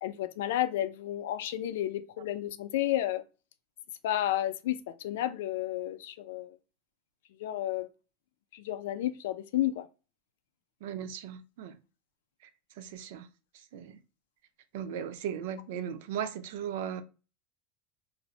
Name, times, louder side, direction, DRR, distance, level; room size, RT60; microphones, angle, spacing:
voice 1, 0.0-3.2 4.0-6.6 7.4-7.9 8.5-9.9, left 13 dB, 80° left, 0.3 m, -31 dB
voice 2, 10.8-11.8 12.8-13.3 13.7-13.9 14.7-17.0, right 9 dB, 65° right, 0.4 m, -37 dB
2.5 x 2.0 x 3.9 m
supercardioid pair, 180°, 0 cm